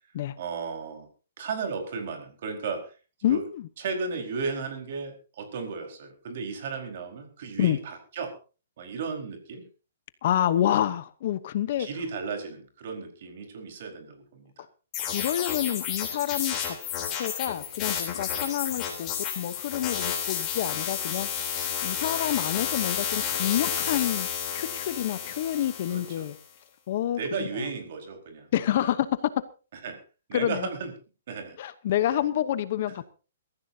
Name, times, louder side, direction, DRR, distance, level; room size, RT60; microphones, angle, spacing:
voice 1, 0.4-1.1 1.4-3.4 3.8-8.4 8.8-9.6 10.7-10.8 11.8-14.7 18.2-18.4 20.6-20.8 21.6-21.8 25.9-26.2 27.2-28.5 28.8-28.9 29.8-30.0 30.3-30.9 31.3-31.6, right 5 dB, 45° right, 4.6 m, -35 dB
voice 2, 3.2-3.6 7.6-7.8 10.2-11.9 15.0-16.8 17.1-21.3 21.8-24.3 24.5-26.4 26.9-27.5 28.5-29.1 30.3-30.7 31.6-33.1, left 11 dB, 40° left, 0.9 m, -28 dB
sound 1, 14.9-26.3, left 8 dB, 20° left, 3.5 m, -31 dB
23.0 x 14.5 x 2.8 m
hypercardioid pair, 175°, 0 cm